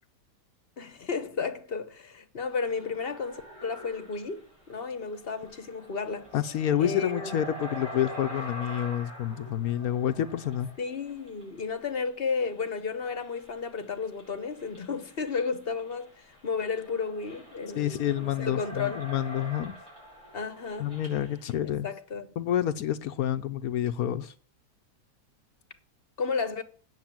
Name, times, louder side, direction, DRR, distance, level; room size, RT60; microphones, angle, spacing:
voice 1, 0.8-6.3 6.8-7.4 10.8-19.1 20.3-20.9 21.6-22.3 26.2-26.6, left 5 dB, 40° left, 0.9 m, -33 dB
sound 1, 2.5-12.0 12.3-21.6, equal, 65° right, 6.4 m, -46 dB
voice 2, 6.3-10.7 17.8-19.7 20.8-21.9 22.4-24.3, left 11 dB, 70° left, 1.0 m, -28 dB
9.4 x 6.8 x 7.3 m
omnidirectional pair, 1.8 m